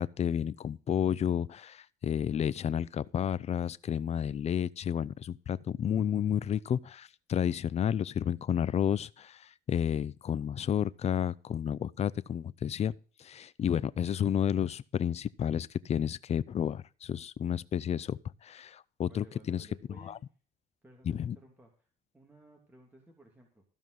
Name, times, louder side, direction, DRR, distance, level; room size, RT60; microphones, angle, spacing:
voice 1, 0.0-19.7 20.1-20.2 21.1-21.4, left 9 dB, 40° left, 0.5 m, -31 dB
voice 2, 19.0-20.2 20.8-21.9 22.1-23.6, right 2 dB, 10° right, 3.0 m, -57 dB
14.5 x 5.5 x 6.4 m
cardioid pair, 110°, 17 cm